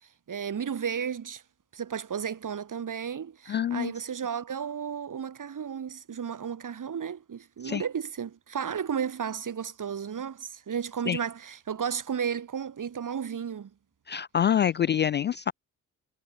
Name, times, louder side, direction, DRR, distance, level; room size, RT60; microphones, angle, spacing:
voice 1, 0.3-1.4 1.7-13.7, right 7 dB, 45° right, 4.6 m, -33 dB
voice 2, 3.5-3.9 7.6-7.8 11.1-11.2 14.1-15.5, left 9 dB, 30° left, 0.4 m, -26 dB
figure-of-eight pair, 40°, 42 cm